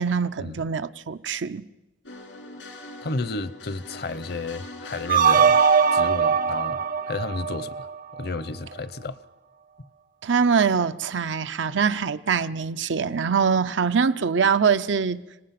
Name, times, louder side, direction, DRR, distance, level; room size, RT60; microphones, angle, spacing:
voice 1, 0.0-1.7 10.2-15.2, right 6 dB, 85° right, 0.6 m, -23 dB
sound 1, 2.0-7.8, left 2 dB, 90° left, 3.0 m, -42 dB
voice 2, 3.0-5.6 5.9-7.9 8.2-9.2, left 3 dB, 60° left, 0.7 m, -32 dB
sound 2, 5.1-8.2, right 6 dB, 50° right, 0.6 m, -20 dB
26.0 x 18.5 x 5.9 m
head